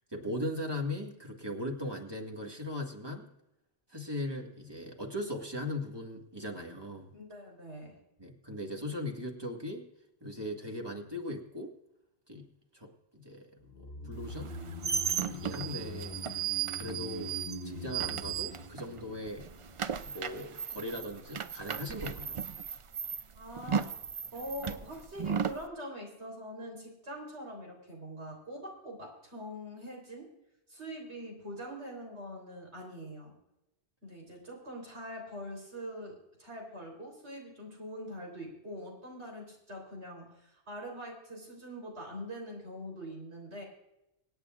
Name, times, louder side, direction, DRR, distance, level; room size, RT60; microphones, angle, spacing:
voice 1, 0.1-3.3 3.9-7.1 8.2-9.8 10.2-11.7 12.3-12.5 12.7-14.5 15.3-16.2 16.8-17.3 17.6-19.5 20.0-22.4, left 1 dB, 20° right, 1 dB, 1.8 m, -39 dB
voice 2, 7.1-8.0 23.3-23.9 24.3-30.3 30.7-33.3 34.0-43.6, equal, 85° right, 0 dB, 4.0 m, -43 dB
sound 1, 13.7-20.1 20.3-20.4, left 1 dB, 45° left, 1.0 m, -43 dB
sound 2, 14.4-19.0 19.3-25.6, right 7 dB, 60° right, 0.3 m, -35 dB
26.5 x 9.0 x 2.4 m, 0.88 s
omnidirectional pair, 1.1 m